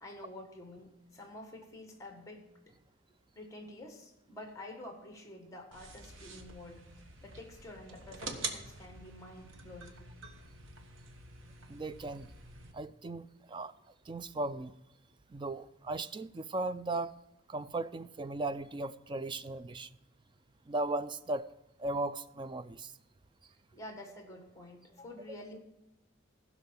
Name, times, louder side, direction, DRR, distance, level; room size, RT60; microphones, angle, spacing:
voice 1, 0.0-2.7 3.3-10.1 23.7-25.6, left 1 dB, 15° left, 1.5 m, -49 dB
sound 1, 5.7-12.7, right 3 dB, 75° right, 1.2 m, -46 dB
voice 2, 11.7-12.3 12.7-13.7 14.1-14.8 15.3-17.1 17.5-20.0 20.7-21.5 21.8-22.9 25.3-25.4, right 2 dB, 25° right, 0.3 m, -37 dB
15.5 x 5.9 x 5.8 m
head